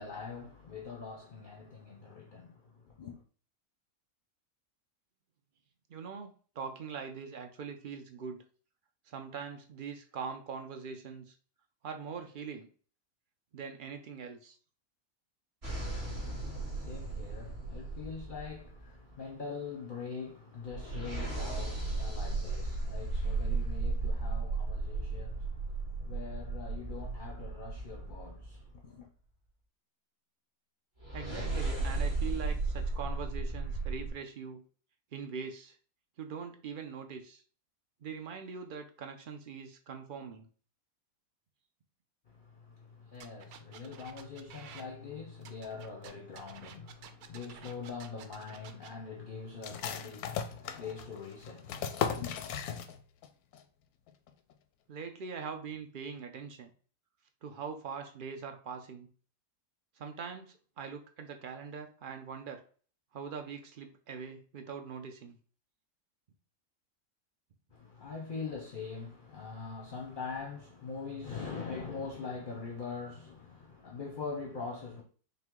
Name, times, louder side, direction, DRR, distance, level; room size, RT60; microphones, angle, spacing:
voice 1, 0.0-3.2 15.9-29.1 42.3-52.3 67.7-75.0, left 5 dB, 45° left, 0.7 m, -43 dB
voice 2, 5.9-6.3 6.6-8.4 9.1-11.3 11.8-12.7 13.5-14.6 31.1-34.6 35.1-35.8 36.2-37.4 38.0-40.5 54.9-56.7 57.4-59.1 60.0-62.6 63.1-65.4 68.1-68.2, right 6 dB, 60° right, 0.5 m, -42 dB
sound 1, 15.6-19.1 20.7-28.7 31.0-34.1, right 3 dB, 45° right, 2.2 m, -35 dB
sound 2, 43.2-44.8 45.4-48.9, right 8 dB, 90° right, 1.1 m, -51 dB
sound 3, 49.6-53.3 53.5-53.6 54.1-54.5, left 8 dB, 90° left, 1.1 m, -37 dB
5.6 x 2.2 x 3.7 m
omnidirectional pair, 1.5 m